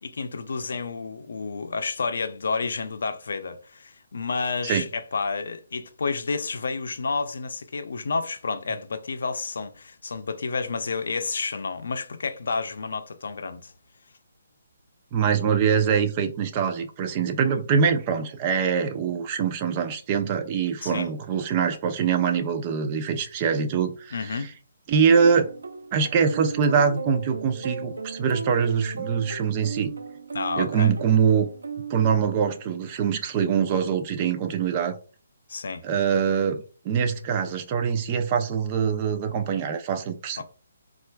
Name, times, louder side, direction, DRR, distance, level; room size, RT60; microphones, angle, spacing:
voice 1, 0.0-13.7 20.8-21.1 24.1-24.5 30.3-31.0 35.5-35.8 40.4-40.5, left 4 dB, 70° left, 0.5 m, -30 dB
voice 2, 15.1-24.5 24.9-25.5 25.9-29.9 30.6-31.5 31.9-35.0 35.8-40.4, right 7 dB, 25° right, 0.5 m, -24 dB
sound 1, 25.2-32.6, right 4 dB, 90° right, 0.5 m, -37 dB
4.3 x 2.4 x 2.2 m
hypercardioid pair, 160°, 0 cm